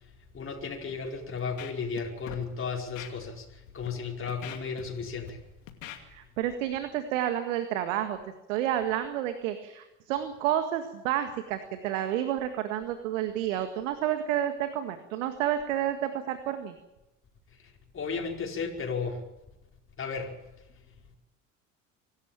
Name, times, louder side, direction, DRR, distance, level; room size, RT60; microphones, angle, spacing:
voice 1, 0.0-5.4 17.6-19.2 20.0-20.4, left 5 dB, 35° left, 1 dB, 5.2 m, -34 dB
Scratching (performance technique), 1.4-2.0 2.3-2.4 3.0-3.1 3.7-3.9 4.3-5.3 5.7-6.0 6.5-6.6, left 12 dB, 80° left, 2.7 m, -42 dB
voice 2, 6.1-8.2 8.5-16.8, right 11 dB, 75° right, 9 dB, 1.9 m, -30 dB
25.0 x 13.0 x 9.1 m, 0.97 s
hypercardioid pair, 70°, 38 cm